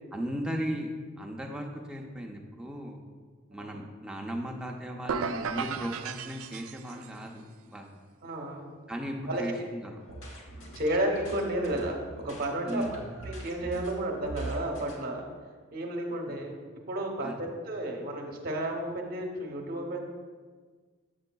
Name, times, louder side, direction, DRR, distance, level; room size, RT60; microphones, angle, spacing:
voice 1, 0.1-3.0 3.5-7.9 8.9-10.0 12.6-13.0 17.2-17.4, equal, 5° right, 0 dB, 0.5 m, -36 dB
sound 1, 5.1-7.2, right 6 dB, 80° right, 0.3 m, -35 dB
voice 2, 8.2-8.8 9.3-9.6 9.8-9.9 10.7-13.0 13.3-15.3 15.7-16.5 16.9-20.0, right 1 dB, 45° right, 1 dB, 0.9 m, -32 dB
sound 2, 10.0-14.9, right 2 dB, 75° left, 1.2 m, -42 dB
7.7 x 6.9 x 2.3 m, 1.5 s
head